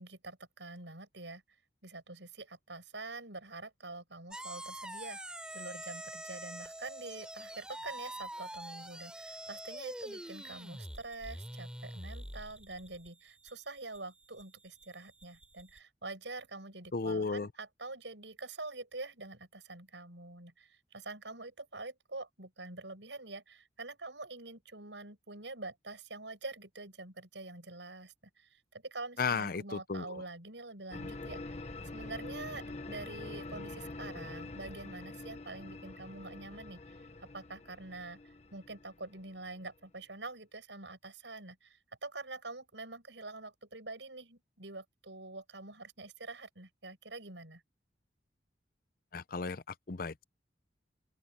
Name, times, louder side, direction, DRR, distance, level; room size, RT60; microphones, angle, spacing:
voice 1, 0.0-1.4 1.8-5.2 5.5-47.6, right 2 dB, 75° right, 7.0 m, -46 dB
sound 1, 4.3-15.8, right 1 dB, 5° right, 7.6 m, -46 dB
voice 2, 16.9-17.5 29.2-30.2 49.1-50.2, left 4 dB, 50° left, 0.6 m, -34 dB
sound 2, 30.9-39.8, left 2 dB, 35° left, 1.2 m, -45 dB
open air
head